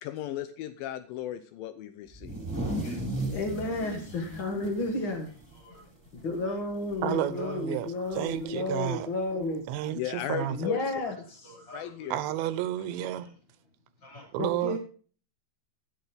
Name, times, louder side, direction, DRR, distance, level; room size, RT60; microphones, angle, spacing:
voice 1, 0.0-2.4 9.9-10.8 11.7-12.2, left 11 dB, 85° left, 2.0 m, -36 dB
sound 1, 2.1-5.8 6.2-6.3 6.7-7.1 8.3-8.4 9.4-9.5, right 1 dB, 5° right, 2.3 m, -35 dB
voice 2, 2.7-3.3 4.1-4.3 5.5-6.0 6.4-6.6 7.0-7.1 7.3-7.6 8.1-8.2 11.4-12.1 13.2-13.3 14.0-14.3, left 1 dB, 30° left, 7.0 m, -49 dB
voice 3, 3.3-5.3 6.1-10.0 10.5-11.5 14.4-14.8, left 2 dB, 60° left, 1.2 m, -32 dB
voice 4, 7.0-9.1 9.7-10.7 12.1-13.3 14.3-14.8, right 13 dB, 85° right, 3.1 m, -31 dB
16.0 x 6.5 x 5.3 m
omnidirectional pair, 5.1 m